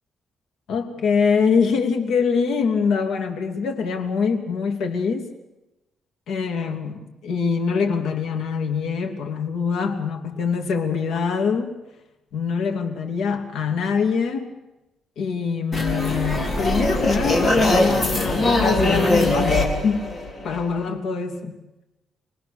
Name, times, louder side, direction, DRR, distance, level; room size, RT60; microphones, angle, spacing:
voice 1, 0.7-5.3 6.3-11.8 12.3-14.5 15.2-20.1 20.4-21.6, left 5 dB, 90° left, 4 dB, 2.9 m, -24 dB
sound 1, 15.7-20.9, left 2 dB, 25° left, 3.3 m, -21 dB
26.5 x 19.5 x 7.0 m, 1.0 s
cardioid pair, 170°, 0 cm